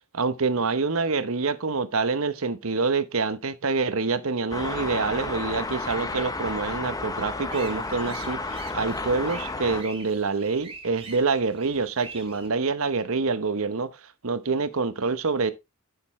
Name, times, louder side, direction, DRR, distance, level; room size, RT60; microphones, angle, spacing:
voice 1, 0.1-13.9 14.2-15.5, right 4 dB, 65° right, 1.0 m, -26 dB
sound 1, 4.5-9.8, left 3 dB, 15° left, 0.8 m, -32 dB
sound 2, 7.5-12.5, right 4 dB, 25° right, 2.1 m, -44 dB
10.0 x 6.9 x 3.1 m
head